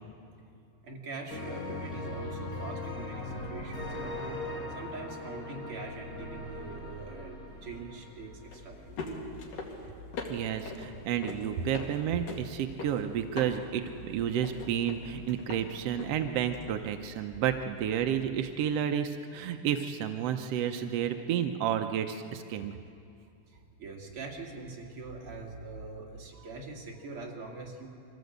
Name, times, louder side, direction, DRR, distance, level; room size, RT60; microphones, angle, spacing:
voice 1, 0.8-9.0 23.5-27.9, right 3 dB, 45° right, -1 dB, 3.1 m, -43 dB
sound 1, 1.3-8.9, left 2 dB, 30° left, 2.2 m, -40 dB
sound 2, 7.5-18.4, left 3 dB, 85° left, 3.8 m, -43 dB
voice 2, 10.3-22.7, right 9 dB, 80° right, 7 dB, 1.4 m, -31 dB
24.0 x 15.5 x 8.0 m, 2.5 s
omnidirectional pair, 3.7 m